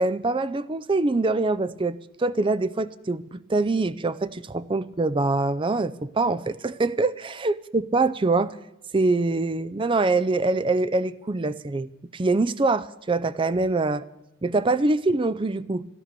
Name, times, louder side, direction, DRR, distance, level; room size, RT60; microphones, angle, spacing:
voice 1, 0.0-8.5 8.9-14.0 14.4-15.9, right 3 dB, 25° right, 14 dB, 0.4 m, -24 dB
14.0 x 12.0 x 6.7 m, 0.90 s
head